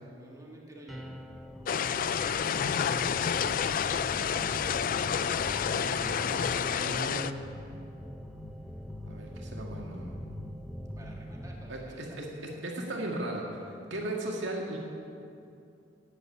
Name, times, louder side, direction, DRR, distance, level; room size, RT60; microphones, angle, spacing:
voice 1, 0.2-1.1 2.5-3.2 11.0-12.2, right 1 dB, 20° right, -2 dB, 1.8 m, -50 dB
sound 1, 0.9-11.6, equal, ahead, 0.7 m, -42 dB
sound 2, 1.7-7.3, left 7 dB, 45° left, 0.3 m, -29 dB
voice 2, 5.7-7.4 9.1-10.1 11.7-12.2 12.6-14.8, right 1 dB, 80° right, -1 dB, 2.1 m, -37 dB
9.5 x 8.2 x 9.1 m, 2.6 s
head